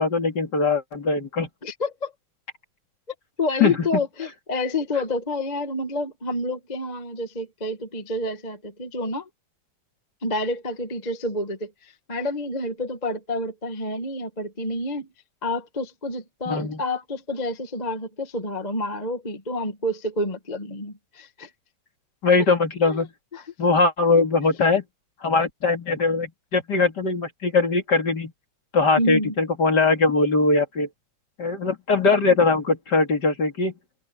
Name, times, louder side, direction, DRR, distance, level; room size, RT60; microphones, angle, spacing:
voice 1, 0.0-1.5 3.6-3.9 16.5-16.8 22.2-23.1 23.6-24.8 25.2-28.3 28.7-30.9 31.4-33.7, left 3 dB, 35° left, 2.6 m, -21 dB
voice 2, 1.6-2.1 3.4-9.3 10.2-15.1 15.4-21.5 22.8-23.1 23.3-23.4 29.0-29.3, left 1 dB, 20° left, 1.3 m, -29 dB
omnidirectional pair, 3.7 m